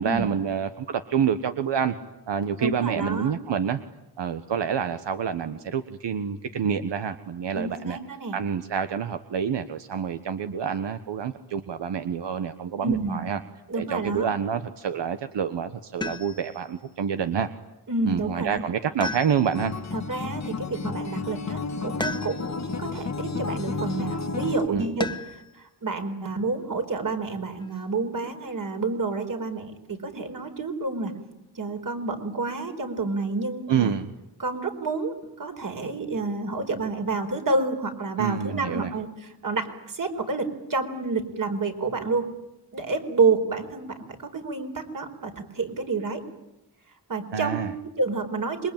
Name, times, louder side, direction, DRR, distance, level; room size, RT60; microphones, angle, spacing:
voice 1, 0.0-1.9 2.3-3.8 4.2-8.0 8.3-13.4 13.7-17.5 18.0-19.7 24.7-25.0 33.7-34.1 38.2-38.9 47.3-47.7, right 7 dB, 85° right, 9 dB, 1.4 m, -27 dB
voice 2, 2.6-3.3 7.5-8.4 12.8-13.2 13.7-14.3 17.9-18.7 19.9-25.1 25.5-31.1 31.5-33.9 34.4-42.3 42.7-46.2 47.1-48.7, right 3 dB, 50° right, 6 dB, 4.5 m, -29 dB
sound 1, 16.0-16.6 19.0-19.8 22.0-22.7 25.0-25.5 27.2-27.8, left 2 dB, 10° left, 1.4 m, -34 dB
Acoustic guitar, 19.5-24.7, left 4 dB, 40° left, 1.6 m, -32 dB
27.0 x 23.5 x 9.0 m, 0.96 s
wide cardioid pair, 140°, 42 cm